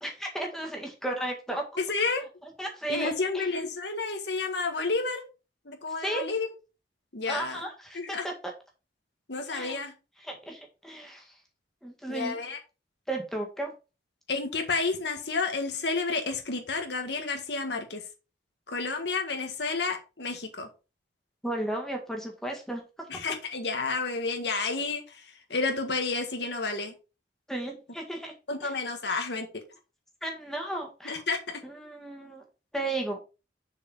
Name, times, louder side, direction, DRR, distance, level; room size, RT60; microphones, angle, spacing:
voice 1, 0.0-1.6 2.6-3.5 6.0-6.2 7.3-8.3 9.5-9.8 10.2-11.3 11.8-12.4 13.1-13.7 21.4-22.8 27.5-28.3 28.6-28.7 30.2-31.2 31.6-32.4 32.7-33.2, right 1 dB, ahead, 1 dB, 1.7 m, -34 dB
voice 2, 1.8-2.2 2.9-5.2 5.6-6.5 7.1-7.6 7.9-8.3 9.3-9.9 12.1-12.6 14.3-18.0 18.7-20.7 23.1-26.9 28.5-29.5 31.0-31.6, left 3 dB, 70° left, 4 dB, 1.6 m, -30 dB
6.7 x 4.6 x 4.9 m, 0.31 s
head